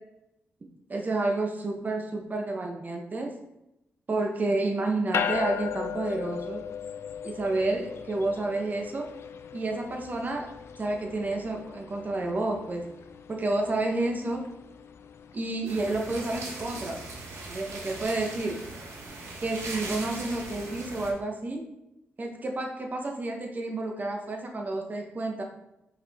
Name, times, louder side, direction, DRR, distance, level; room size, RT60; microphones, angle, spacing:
voice 1, 0.9-3.3 4.1-6.6 7.2-9.1 9.5-10.5 10.8-12.8 13.3-14.4 15.3-17.0 17.5-18.6 19.4-21.7 22.2-25.4, right 2 dB, 40° right, 2 dB, 1.1 m, -30 dB
sound 1, 5.1-16.7, left 8 dB, 70° left, 0.4 m, -38 dB
sound 2, 15.7-21.1, right 2 dB, 85° right, 1.3 m, -39 dB
5.6 x 4.9 x 3.6 m, 0.89 s
cardioid pair, 80°, 5 cm